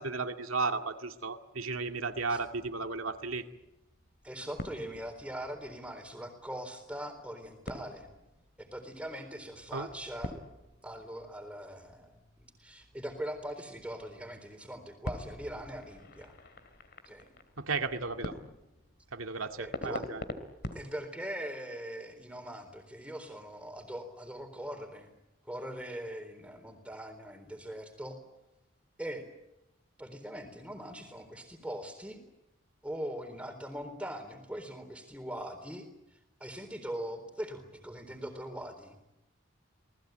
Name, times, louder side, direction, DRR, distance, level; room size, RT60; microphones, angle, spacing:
voice 1, 0.0-3.4 9.7-9.9 17.6-18.3 19.1-20.2, right 4 dB, 85° right, 5 dB, 2.2 m, -34 dB
sound 1, 2.0-20.9, left 1 dB, 50° left, 2.8 m, -47 dB
voice 2, 4.2-8.1 8.6-10.3 10.8-16.3 17.1-17.3 19.6-20.1 20.7-25.1 25.4-28.2 29.0-29.3 30.0-32.2 32.8-35.8 36.4-39.0, equal, 5° right, 6 dB, 3.9 m, -41 dB
28.0 x 19.5 x 9.2 m, 0.94 s
head